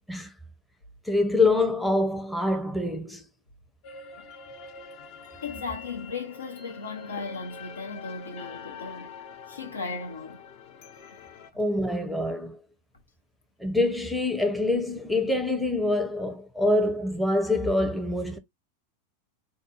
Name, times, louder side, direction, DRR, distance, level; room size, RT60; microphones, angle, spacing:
voice 1, 1.1-3.3 11.6-12.6 13.6-18.4, left 2 dB, ahead, 0.7 m, -25 dB
sound 1, 3.8-11.5, left 5 dB, 45° left, 0.7 m, -45 dB
voice 2, 5.4-9.2 9.5-10.4, left 4 dB, 75° left, 0.9 m, -36 dB
3.7 x 2.6 x 2.4 m
figure-of-eight pair, 90°, 0 cm